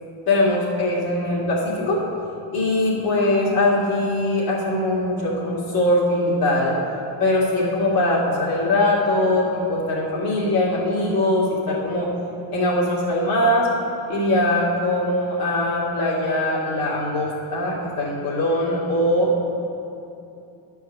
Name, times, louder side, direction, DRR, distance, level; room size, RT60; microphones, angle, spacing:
voice 1, 0.3-2.0 2.5-6.8 7.2-12.1 12.5-13.7 14.1-19.3, left 1 dB, 50° left, -4 dB, 2.3 m, -21 dB
10.5 x 4.7 x 6.9 m, 2.7 s
cardioid pair, 150°, 46 cm